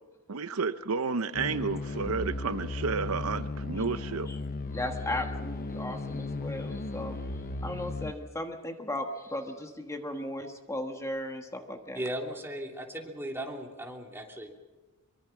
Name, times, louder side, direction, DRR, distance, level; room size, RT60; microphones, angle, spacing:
voice 1, 0.3-4.3, right 4 dB, 70° right, 0.7 m, -31 dB
sound 1, 1.3-8.1, left 3 dB, 40° left, 0.7 m, -36 dB
voice 2, 4.7-12.0, left 1 dB, 15° left, 1.4 m, -36 dB
voice 3, 11.9-14.6, right 1 dB, 10° right, 3.1 m, -37 dB
24.5 x 23.5 x 5.9 m
head